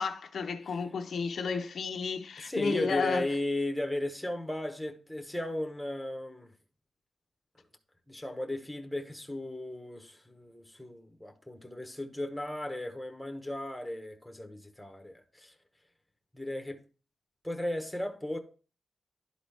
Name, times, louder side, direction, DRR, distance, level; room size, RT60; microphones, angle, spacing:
voice 1, 0.0-3.3, left 5 dB, 60° left, 0.5 m, -32 dB
voice 2, 2.4-6.5 8.1-15.5 16.3-16.8 17.4-18.4, left 1 dB, ahead, 1.0 m, -35 dB
11.5 x 4.0 x 3.4 m
wide cardioid pair, 160°, 0 cm